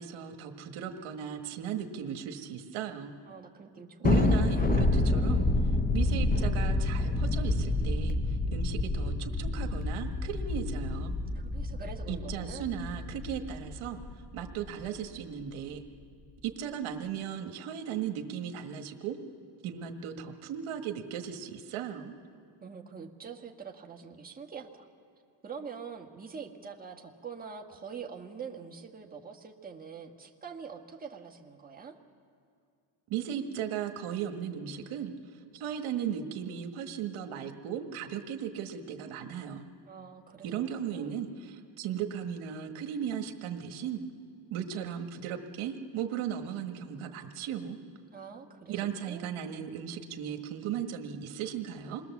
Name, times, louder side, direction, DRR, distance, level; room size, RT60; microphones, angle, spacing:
voice 1, 0.0-3.2 4.0-5.5 5.9-8.2 8.5-11.1 12.1-14.0 14.3-15.8 16.4-19.2 19.6-22.1 33.1-35.1 35.5-39.7 40.4-44.0 44.5-47.8 48.7-52.0, right 8 dB, 75° right, 5 dB, 1.6 m, -36 dB
voice 2, 3.3-4.2 11.3-12.7 22.3-24.9 25.4-31.9 39.9-41.1 48.1-49.3, right 6 dB, 20° right, 1 dB, 1.6 m, -45 dB
Thunder, 4.0-14.7, left 2 dB, 20° left, 0.9 m, -28 dB
27.0 x 20.5 x 7.2 m, 2.3 s
cardioid pair, 125°, 48 cm